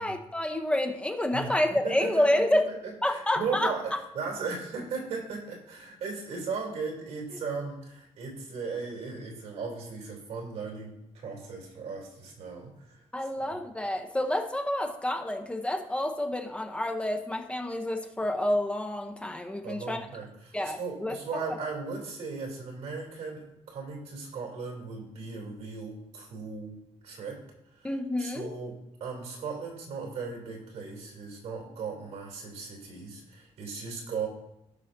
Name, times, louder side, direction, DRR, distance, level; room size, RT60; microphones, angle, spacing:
voice 1, 0.0-2.6 3.0-3.7 13.1-20.0 20.5-21.1 27.8-28.5, left 1 dB, 10° left, 4 dB, 0.6 m, -28 dB
voice 2, 1.3-13.0 13.4-13.5 19.6-26.8 27.0-27.4 27.7-27.9 28.2-34.3, right 4 dB, 85° right, 0 dB, 2.8 m, -37 dB
17.0 x 5.6 x 2.6 m, 0.86 s
cardioid pair, 165°, 11 cm